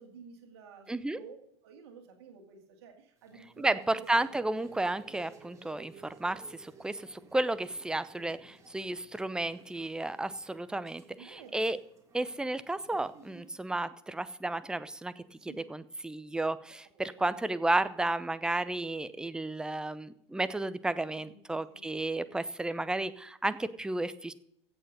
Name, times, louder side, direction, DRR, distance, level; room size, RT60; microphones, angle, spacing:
voice 1, 0.0-1.4 1.6-4.1 8.2-8.3 11.2-11.7 15.4-15.7 17.2-17.3 21.3-21.8, right 6 dB, 60° right, 3 dB, 2.2 m, -52 dB
voice 2, 0.9-1.2 3.6-11.8 12.1-24.3, right 2 dB, 5° right, 15 dB, 0.7 m, -33 dB
sound 1, 3.2-13.7, right 4 dB, 20° right, 2.9 m, -57 dB
16.0 x 7.0 x 5.3 m, 0.74 s
figure-of-eight pair, 80°, 15 cm